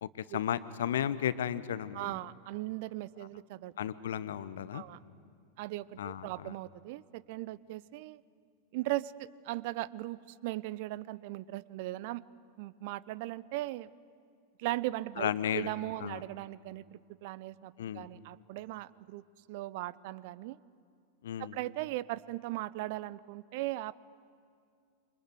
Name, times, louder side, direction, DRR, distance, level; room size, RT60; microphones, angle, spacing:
voice 1, 0.0-2.2 3.8-4.8 6.0-6.5 15.2-15.7 16.0-16.2 17.8-18.1 21.2-21.6, left 10 dB, 60° left, 16 dB, 1.0 m, -34 dB
voice 2, 1.9-3.7 4.7-5.0 5.6-8.2 8.7-12.2 12.6-13.9 14.6-19.2 19.5-20.6 21.4-23.9, right 17 dB, 50° right, 21 dB, 0.6 m, -38 dB
27.5 x 24.5 x 8.1 m, 2.3 s
figure-of-eight pair, 90°, 0 cm